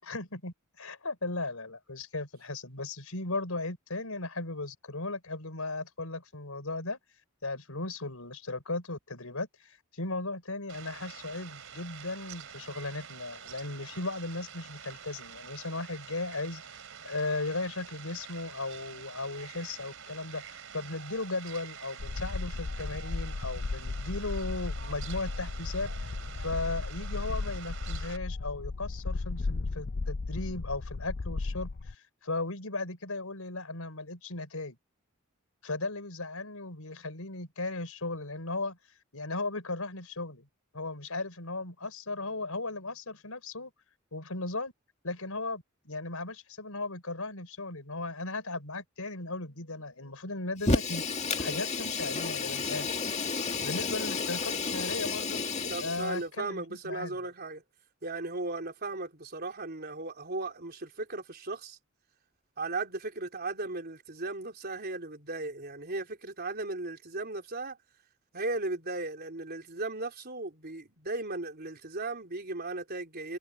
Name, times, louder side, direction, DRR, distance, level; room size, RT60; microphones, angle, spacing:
voice 1, 0.0-7.0 7.4-16.6 17.0-25.9 26.3-34.8 35.6-38.8 39.1-40.5 40.7-43.7 44.1-44.7 45.0-51.0 51.4-52.9 53.6-55.4 55.8-57.2, left 2 dB, 85° left, 4.2 m, -36 dB
Fowl, 10.7-28.2, right 7 dB, 65° right, 3.7 m, -47 dB
sound 1, 22.0-31.9, left 3 dB, 50° left, 0.5 m, -35 dB
Fire, 50.6-56.2, left 4 dB, 30° left, 2.2 m, -31 dB
voice 2, 55.7-57.6 58.0-61.8 62.6-67.8 68.3-73.4, right 2 dB, 45° right, 3.9 m, -36 dB
head